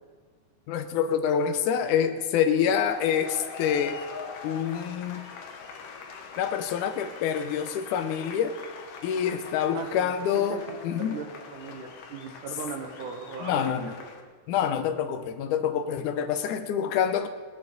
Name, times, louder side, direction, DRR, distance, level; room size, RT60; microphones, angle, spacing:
voice 1, 0.7-4.0 4.4-5.2 6.4-8.5 9.0-11.2 13.4-13.9 14.5-17.3, left 8 dB, 90° left, 8 dB, 2.2 m, -26 dB
sound 1, 2.6-14.2, left 5 dB, 60° left, 1.9 m, -43 dB
voice 2, 9.7-14.0, right 5 dB, 80° right, 4 dB, 2.8 m, -38 dB
18.0 x 11.0 x 4.1 m, 1.5 s
omnidirectional pair, 3.6 m